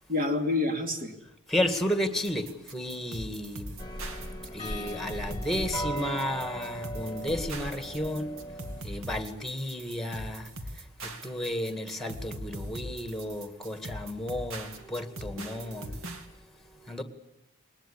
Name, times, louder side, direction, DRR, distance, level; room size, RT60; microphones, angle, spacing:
voice 1, 0.1-1.1, left 2 dB, 40° right, 2.8 m, -27 dB
voice 2, 1.5-3.8 4.5-8.4 8.8-17.0, left 1 dB, ahead, 1.9 m, -33 dB
sound 1, 2.2-16.3, right 1 dB, 65° right, 2.5 m, -40 dB
sound 2, 3.8-8.8, equal, 20° left, 1.5 m, -38 dB
21.0 x 20.0 x 10.0 m
head